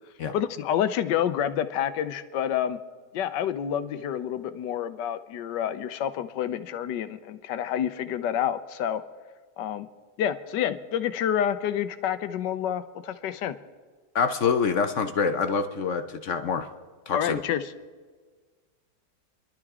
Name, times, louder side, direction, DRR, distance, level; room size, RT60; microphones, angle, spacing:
voice 1, 0.3-2.8 3.1-9.0 9.6-9.9 10.2-13.6 17.1-17.6, left 9 dB, 85° left, 12 dB, 1.4 m, -28 dB
voice 2, 14.1-16.7 17.1-17.4, left 5 dB, 60° left, 8 dB, 0.9 m, -26 dB
27.5 x 12.0 x 3.6 m, 1.5 s
omnidirectional pair, 1.9 m